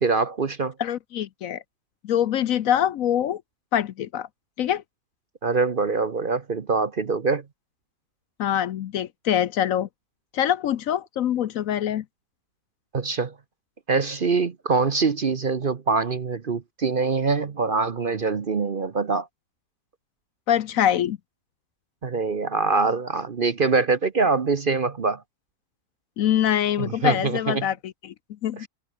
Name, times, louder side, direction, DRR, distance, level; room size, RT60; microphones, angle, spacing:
voice 1, 0.0-0.7 5.4-7.4 12.9-13.3 13.9-19.3 22.0-25.2 26.8-27.7 28.6-28.7, right 4 dB, 40° right, 0.9 m, -24 dB
voice 2, 0.8-1.6 2.0-3.4 3.7-4.3 4.6-4.8 8.4-9.9 10.3-12.0 20.5-21.2 26.2-28.1 28.4-28.7, left 10 dB, 65° left, 1.0 m, -24 dB
omnidirectional pair, 1.7 m